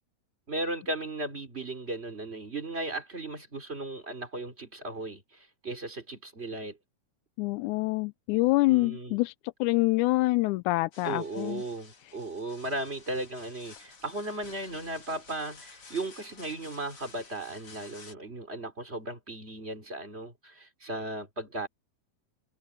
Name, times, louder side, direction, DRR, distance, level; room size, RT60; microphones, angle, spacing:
voice 1, 0.5-6.8 8.7-9.2 11.0-21.7, right 2 dB, 20° right, 3.3 m, -36 dB
voice 2, 7.4-9.3 9.6-11.6, left 21 dB, 85° left, 2.0 m, -26 dB
sound 1, 10.9-18.1, left 4 dB, 45° left, 4.4 m, -52 dB
omnidirectional pair, 3.5 m